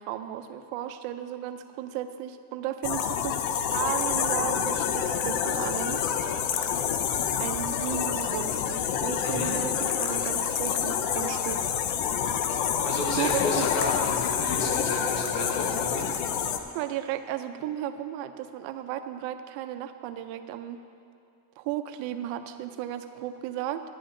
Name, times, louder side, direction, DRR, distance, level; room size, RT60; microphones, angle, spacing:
voice 1, 0.0-3.4 3.7-6.0 7.4-11.7 13.1-13.7 16.7-20.8 21.6-23.8, right 11 dB, 80° right, 8 dB, 0.8 m, -34 dB
sound 1, 2.8-16.6, left 8 dB, 85° left, 0.8 m, -27 dB
voice 2, 9.2-9.6 12.8-16.1, left 1 dB, 65° left, -1 dB, 2.2 m, -33 dB
12.5 x 10.0 x 3.8 m, 2.5 s
cardioid pair, 150°, 45 cm